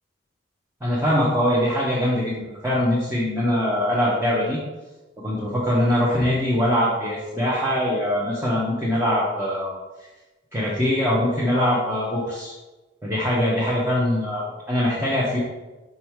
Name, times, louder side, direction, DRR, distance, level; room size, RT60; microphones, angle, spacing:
voice 1, 0.8-4.6 5.2-9.8 10.5-12.5 13.0-15.4, left 1 dB, 10° right, -7 dB, 1.2 m, -22 dB
5.5 x 5.5 x 4.7 m, 1.1 s
head